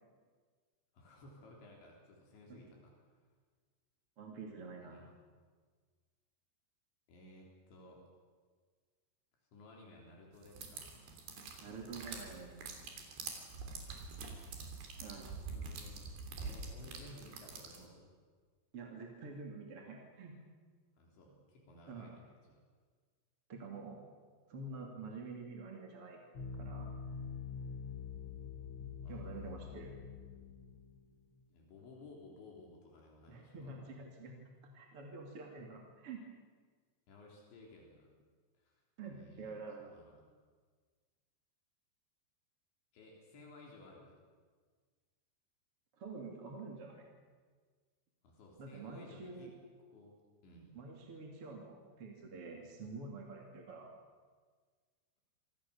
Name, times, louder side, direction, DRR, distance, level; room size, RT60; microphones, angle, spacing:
voice 1, 0.9-3.1 4.8-5.2 7.1-8.0 9.5-11.0 13.7-14.3 15.5-16.1 16.4-18.1 21.0-22.6 29.0-29.9 31.5-33.8 37.1-38.1 38.5-39.5 39.8-40.3 42.9-44.1 48.2-49.5 49.9-50.2 50.4-50.8, left 2 dB, 75° left, -1 dB, 6.2 m, -57 dB
voice 2, 4.2-5.1 11.6-12.6 15.0-15.3 18.7-20.4 21.9-22.1 23.5-24.0 24.5-26.2 26.6-26.9 29.1-29.9 33.3-34.3 34.6-36.2 39.0-39.9 46.0-47.1 48.6-49.5 50.7-53.9, right 4 dB, 35° right, 0 dB, 3.1 m, -47 dB
sound 1, 10.4-17.9, right 4 dB, 65° right, 5.3 m, -46 dB
sound 2, 26.3-31.4, left 6 dB, 45° left, 1.9 m, -45 dB
28.0 x 25.0 x 7.1 m, 1.5 s
omnidirectional pair, 5.3 m